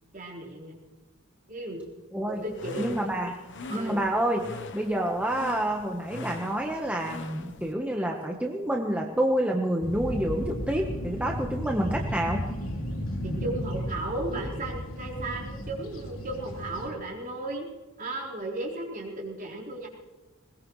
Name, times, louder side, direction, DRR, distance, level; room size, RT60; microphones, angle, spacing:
voice 1, 0.1-0.8 1.5-1.8 2.2-2.9 3.7-4.0 13.2-17.7 18.0-19.9, right 2 dB, 40° right, -2 dB, 4.2 m, -35 dB
voice 2, 2.1-2.4 2.8-3.3 3.7-4.4 4.7-12.4, right 1 dB, 5° right, 0 dB, 1.1 m, -28 dB
sound 1, 2.3-7.7, left 3 dB, 60° left, 1.0 m, -43 dB
sound 2, 9.8-16.9, equal, 80° left, 2.7 m, -34 dB
21.0 x 21.0 x 3.2 m, 1.2 s
head